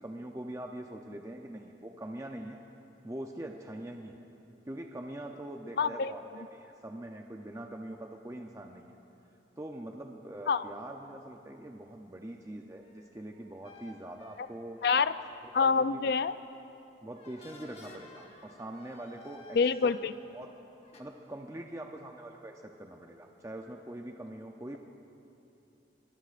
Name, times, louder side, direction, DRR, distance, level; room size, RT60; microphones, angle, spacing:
voice 1, 0.0-2.6 3.0-4.1 4.7-9.0 9.6-14.8 15.6-16.1 17.0-19.6 19.8-20.0 20.3-20.5 21.0-24.8, right 1 dB, 15° right, 2 dB, 0.5 m, -43 dB
voice 2, 5.8-6.1 10.5-10.6 14.8-15.1 15.5-16.3 19.6-20.1, left 5 dB, 55° left, 14 dB, 0.4 m, -26 dB
sound 1, 12.8-15.4 15.9-16.2 17.0-20.4 20.8-21.0, left 2 dB, 35° left, 1.2 m, -54 dB
24.5 x 20.0 x 2.5 m, 2.9 s
head